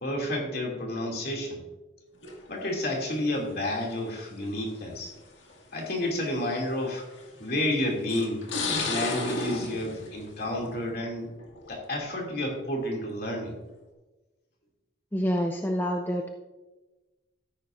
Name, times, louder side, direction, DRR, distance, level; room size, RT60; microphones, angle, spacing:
voice 1, 0.0-1.6 2.5-5.1 5.7-7.1 7.4-11.3 11.7-13.6, left 1 dB, 50° left, -1 dB, 2.6 m, -30 dB
sound 1, 2.2-2.6 3.7-3.8 4.9-5.0 5.5-5.6 7.0-7.4 8.1-11.0 11.3-11.8, left 2 dB, 70° left, 2.0 m, -33 dB
voice 2, 15.1-16.2, equal, 10° left, 3 dB, 0.5 m, -27 dB
13.5 x 10.5 x 2.6 m, 1.1 s
head